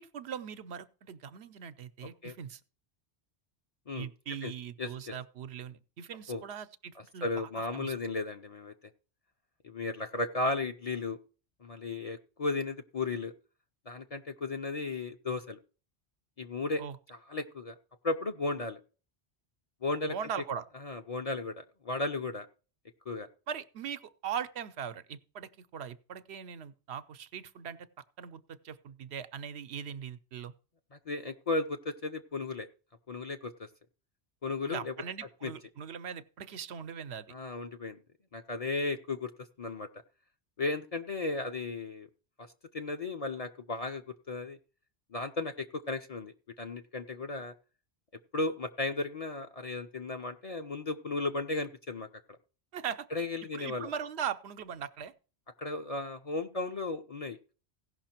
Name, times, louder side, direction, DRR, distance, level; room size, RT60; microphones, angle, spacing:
voice 1, 0.0-2.6 4.0-7.9 16.8-17.0 20.1-20.6 23.5-27.9 28.2-30.5 34.7-37.3 52.7-53.1 53.5-55.1, right 8 dB, 80° right, 1.0 m, -40 dB
voice 2, 4.8-5.1 6.3-6.4 7.0-8.7 9.6-11.2 11.6-13.3 13.9-15.6 16.4-16.8 17.1-17.7 18.0-18.8 19.8-20.2 20.8-22.5 23.1-23.3 30.9-32.7 33.1-33.7 34.4-34.9 35.4-35.5 37.3-38.0 38.3-39.3 39.6-39.9 40.6-42.1 42.7-44.6 45.1-47.5 48.3-52.1 53.1-53.9 55.6-57.5, left 3 dB, 40° left, 0.6 m, -35 dB
16.5 x 5.7 x 4.4 m
omnidirectional pair, 1.1 m